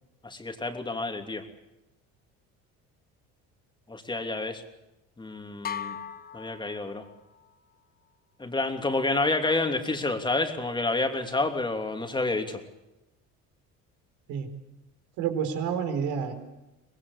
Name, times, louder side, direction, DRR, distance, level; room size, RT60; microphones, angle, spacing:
voice 1, 0.2-1.4 3.9-4.6 5.2-6.0 6.3-7.0 8.4-12.6, left 2 dB, 15° left, 5 dB, 3.1 m, -29 dB
sound 1, 5.6-7.4, left 8 dB, 30° left, 1.2 m, -38 dB
voice 2, 15.2-16.3, right 7 dB, 80° right, 8 dB, 4.4 m, -29 dB
24.5 x 20.0 x 8.2 m, 0.97 s
cardioid pair, 115°, 30 cm